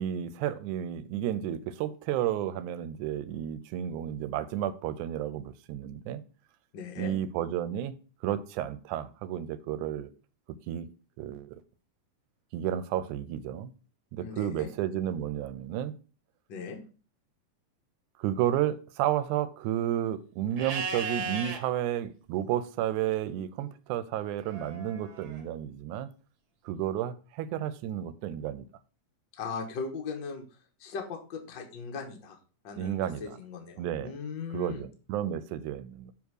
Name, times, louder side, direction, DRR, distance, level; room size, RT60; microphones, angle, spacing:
voice 1, 0.0-6.2 7.0-8.0 8.2-10.1 10.5-10.9 11.2-11.6 12.5-13.7 14.1-16.0 18.2-26.1 26.7-28.7 32.8-33.4 33.8-34.1 34.5-36.1, right 11 dB, 80° right, 2.0 m, -32 dB
voice 2, 6.7-7.1 14.2-14.7 16.5-16.8 29.3-30.4 30.8-32.4 32.6-34.9, left 5 dB, 55° left, 1.3 m, -38 dB
Livestock farm animals working animals, 20.6-21.6 24.4-25.4, right 4 dB, 55° right, 1.6 m, -35 dB
7.0 x 3.5 x 6.3 m
omnidirectional pair, 3.5 m